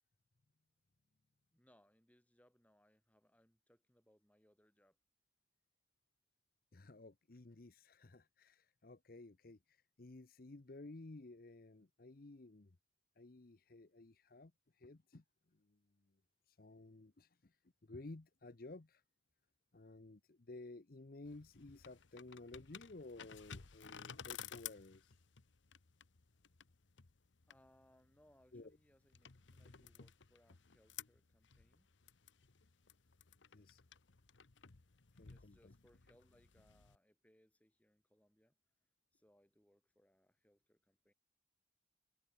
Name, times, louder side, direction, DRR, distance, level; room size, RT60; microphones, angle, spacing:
voice 1, 1.5-5.0 27.5-31.9 35.2-38.6 39.1-41.1, equal, 10° left, 3.0 m, -72 dB
voice 2, 6.7-12.8 13.2-14.5 14.8-15.2 15.5-15.8 16.5-17.6 17.8-19.0 19.7-25.2 28.5-28.7 33.5-33.8 35.2-35.7, left 2 dB, 50° left, 0.8 m, -55 dB
sound 1, 21.2-36.9, left 8 dB, 80° left, 1.0 m, -56 dB
head